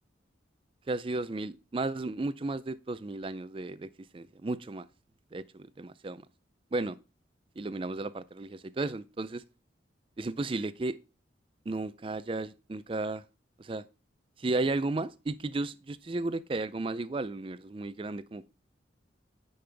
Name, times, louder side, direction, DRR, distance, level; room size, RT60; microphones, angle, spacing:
voice 1, 0.9-4.9 5.3-6.2 6.7-7.0 7.6-9.4 10.2-11.0 11.7-13.2 13.6-13.8 14.4-18.5, right 2 dB, 30° right, 0.4 m, -34 dB
10.0 x 5.5 x 3.4 m
head